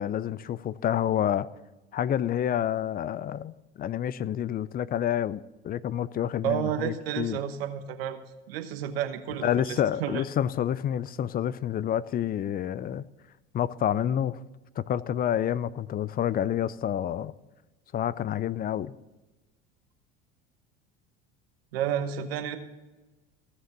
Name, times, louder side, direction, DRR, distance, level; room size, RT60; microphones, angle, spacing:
voice 1, 0.0-1.5 1.9-5.4 5.6-7.4 9.4-13.0 13.5-14.4 14.8-17.3 17.9-18.9, left 10 dB, 30° left, 0.5 m, -28 dB
voice 2, 6.4-8.2 8.5-10.2 21.7-22.6, right 9 dB, 75° right, 1.1 m, -31 dB
16.0 x 6.7 x 6.1 m
hypercardioid pair, 80°, 30 cm